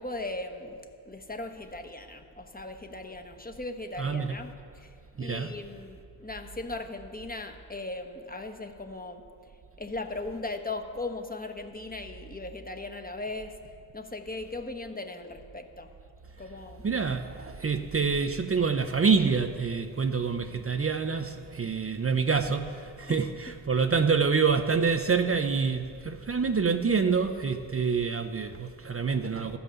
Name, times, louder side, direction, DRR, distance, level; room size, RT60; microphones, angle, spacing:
voice 1, 0.0-9.2 9.8-13.6 13.9-15.9 16.4-16.9 23.1-23.3, left 2 dB, 20° left, 1.1 m, -38 dB
voice 2, 4.0-4.4 5.2-5.6 16.8-29.6, right 5 dB, 35° right, 0.6 m, -27 dB
13.5 x 5.6 x 6.9 m
supercardioid pair, 40°, 41 cm